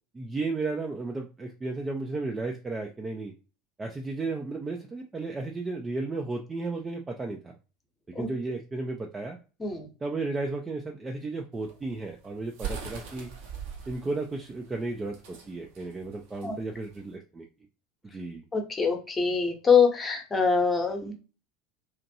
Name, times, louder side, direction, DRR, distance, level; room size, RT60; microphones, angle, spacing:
voice 1, 0.1-3.3 3.8-7.6 8.2-9.4 10.0-13.3 13.9-17.4 18.1-18.4, right 3 dB, 20° right, 2 dB, 0.4 m, -34 dB
sound 1, 11.5-17.1, right 6 dB, 60° right, 0.7 m, -41 dB
voice 2, 18.5-21.1, left 5 dB, 20° left, 3 dB, 0.9 m, -24 dB
3.0 x 2.5 x 2.7 m, 0.34 s
figure-of-eight pair, 75°, 0 cm